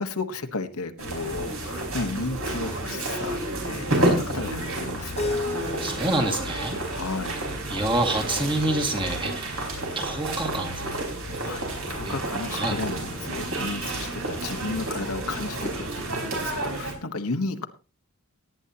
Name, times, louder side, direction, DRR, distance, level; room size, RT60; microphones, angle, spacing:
voice 1, 0.0-5.2 6.7-7.5 9.7-9.8 11.4-15.9 16.2-17.7, left 3 dB, 90° left, 7 dB, 1.3 m, -33 dB
sound 1, 1.0-16.9, right 1 dB, 70° right, 5.0 m, -30 dB
Keyboard (musical), 5.2-8.1, left 3 dB, 30° left, 1.1 m, -34 dB
voice 2, 5.8-6.8 7.7-10.8 12.0-12.2 12.5-12.8, right 2 dB, 20° right, 2 dB, 2.1 m, -27 dB
18.0 x 10.0 x 2.9 m, 0.32 s
head